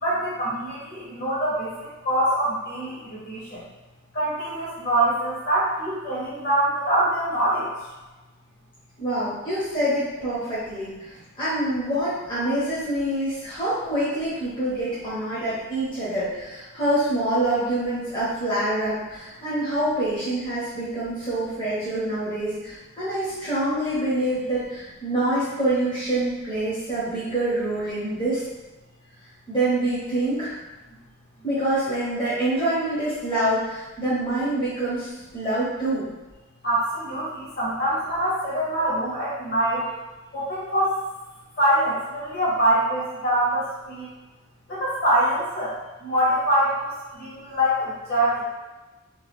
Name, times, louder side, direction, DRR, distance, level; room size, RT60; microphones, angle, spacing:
voice 1, 0.0-1.7 2.0-3.6 4.1-7.7 36.6-39.8 40.3-40.9 41.6-44.1 44.7-45.7 46.0-48.4, right 1 dB, 50° left, -8 dB, 1.3 m, -24 dB
voice 2, 9.0-28.4 29.5-30.5 31.4-36.1, right 1 dB, 25° left, -12 dB, 0.8 m, -26 dB
2.9 x 2.2 x 3.5 m, 1.1 s
head